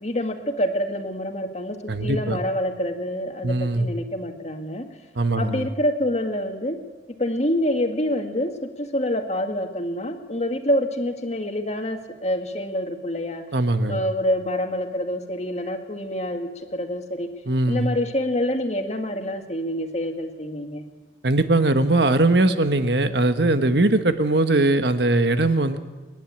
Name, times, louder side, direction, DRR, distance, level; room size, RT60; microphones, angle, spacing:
voice 1, 0.0-4.9 5.4-6.8 7.2-13.4 13.9-17.3 17.7-20.9, left 1 dB, 40° left, 4 dB, 1.9 m, -26 dB
voice 2, 1.9-2.4 3.4-3.9 5.1-5.7 13.5-14.0 17.5-17.9 21.2-25.8, right 2 dB, 65° right, 9 dB, 1.2 m, -20 dB
27.5 x 11.0 x 8.7 m, 1.3 s
head